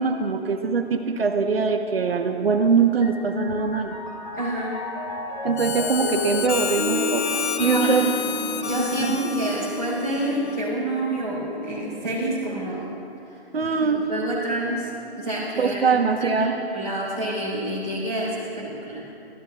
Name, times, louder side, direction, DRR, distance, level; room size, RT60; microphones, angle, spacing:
voice 1, 0.0-3.9 5.4-8.0 9.0-9.2 13.5-14.1 15.6-16.6, right 5 dB, 65° right, 4 dB, 1.0 m, -22 dB
Piano, 2.9-12.5, left 2 dB, 45° left, 2.5 m, -32 dB
voice 2, 4.4-4.7 7.6-8.0 8.6-13.0 13.8-19.1, right 1 dB, 10° left, -8 dB, 3.7 m, -28 dB
Harmonica, 5.6-10.7, left 6 dB, 80° left, 0.9 m, -30 dB
26.5 x 14.5 x 2.3 m, 2.7 s
hypercardioid pair, 175°, 32 cm